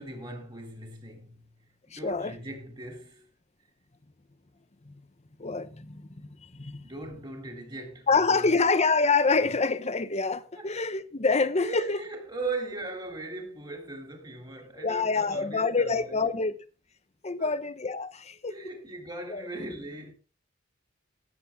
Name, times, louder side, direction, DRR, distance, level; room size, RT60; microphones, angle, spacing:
voice 1, 0.0-1.5 1.9-3.3 6.8-8.7 10.5-10.7 11.3-16.4 17.4-17.6 18.5-20.1, right 2 dB, 20° right, 3.1 m, -39 dB
voice 2, 1.9-2.3 4.9-5.0 5.4-6.8 8.1-12.0 14.8-16.5 17.2-18.5 19.3-19.4, left 4 dB, 30° left, 0.9 m, -26 dB
17.0 x 7.8 x 3.6 m
head